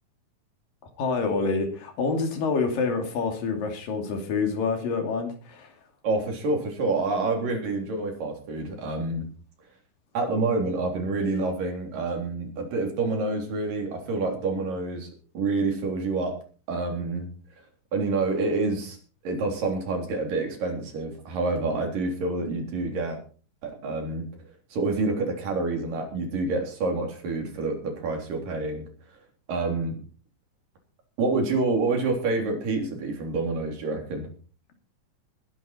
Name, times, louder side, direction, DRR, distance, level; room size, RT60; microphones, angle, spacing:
voice 1, 1.0-5.7, left 4 dB, 90° left, 5 dB, 4.4 m, -27 dB
voice 2, 6.0-9.3 10.1-15.1 15.4-16.4 16.7-17.3 17.9-19.0 19.2-23.2 23.6-24.3 24.7-28.9 29.5-30.0 31.2-34.3, right 3 dB, 80° right, 3 dB, 5.2 m, -27 dB
20.0 x 10.5 x 4.4 m, 0.38 s
omnidirectional pair, 3.8 m